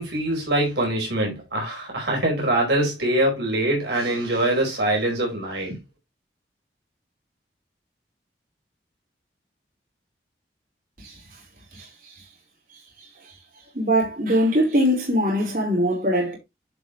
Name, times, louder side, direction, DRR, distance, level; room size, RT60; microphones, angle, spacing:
voice 1, 0.0-5.8, right 1 dB, 75° right, 4.7 m, -23 dB
voice 2, 13.7-16.3, equal, 50° right, 4.8 m, -21 dB
11.0 x 5.1 x 3.2 m
head